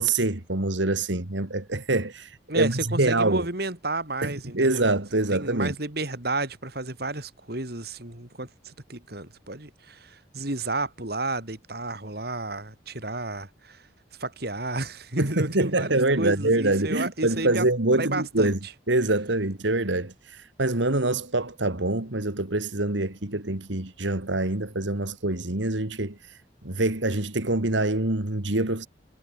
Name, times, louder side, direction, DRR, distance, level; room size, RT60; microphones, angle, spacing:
voice 1, 0.0-3.5 4.2-5.7 15.2-18.6 18.9-26.4 26.6-28.9, right 2 dB, 75° right, 2.3 m, -25 dB
voice 2, 2.5-4.9 5.3-13.8 14.2-17.6 17.9-18.5, right 2 dB, 55° right, 3.5 m, -32 dB
head